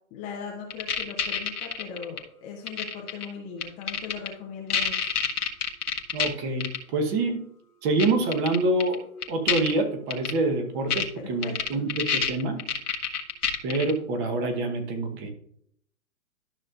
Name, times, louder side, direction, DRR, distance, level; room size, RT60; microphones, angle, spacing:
voice 1, 0.1-5.1 11.1-11.6, left 6 dB, 15° left, 0 dB, 0.7 m, -39 dB
sound 1, 0.7-2.2 2.7-3.2 3.6-4.3 4.7-6.3 6.6-6.8 8.0-8.1 8.3-9.0 9.2-9.7 10.1-10.3 10.9-11.0 11.4-13.9, left 6 dB, 85° left, 1.6 m, -27 dB
voice 2, 6.1-7.4 7.8-12.6 13.6-15.3, right 2 dB, 20° right, 5 dB, 1.0 m, -26 dB
12.0 x 6.3 x 2.5 m, 0.68 s
hypercardioid pair, 140°, 44 cm